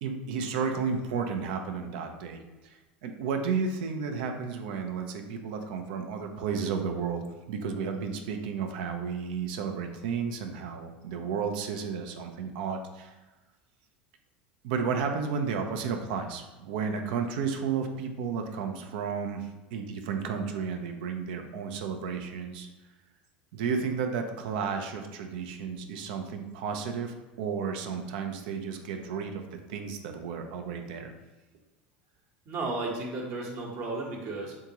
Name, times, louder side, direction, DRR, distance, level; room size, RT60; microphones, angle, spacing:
voice 1, 0.0-13.1 14.6-22.7 23.5-31.1, right 6 dB, 70° right, 5 dB, 0.5 m, -32 dB
voice 2, 32.4-34.6, right 2 dB, 55° right, -1 dB, 1.1 m, -34 dB
3.7 x 3.6 x 2.9 m, 1.1 s
hypercardioid pair, 90°, 5 cm